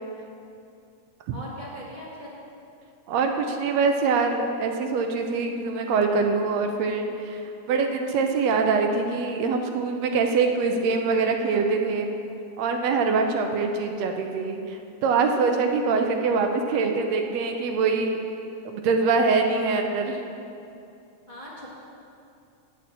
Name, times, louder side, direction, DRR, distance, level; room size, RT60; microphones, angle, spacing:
voice 1, 1.3-2.4 21.3-21.7, equal, 30° left, -7 dB, 0.8 m, -39 dB
voice 2, 3.1-12.1 12.6-18.2 18.7-20.2, right 4 dB, 70° right, 4 dB, 1.7 m, -24 dB
8.7 x 6.8 x 7.3 m, 2.6 s
omnidirectional pair, 3.5 m